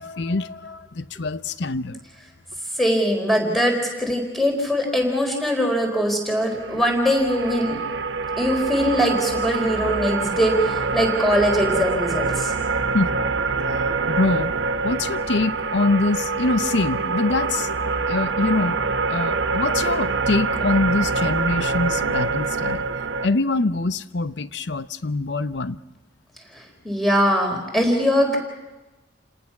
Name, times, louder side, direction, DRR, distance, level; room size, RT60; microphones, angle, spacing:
voice 1, 0.0-2.0 12.9-13.1 13.7-14.6 14.8-17.7 18.1-18.8 19.1-22.8 23.2-25.8, left 3 dB, 70° left, 0.7 m, -24 dB
voice 2, 2.7-7.8 8.4-12.5 26.5-28.4, equal, ahead, 4.2 m, -21 dB
sound 1, 6.5-23.3, right 4 dB, 75° right, 1.2 m, -25 dB
29.5 x 19.0 x 5.9 m
head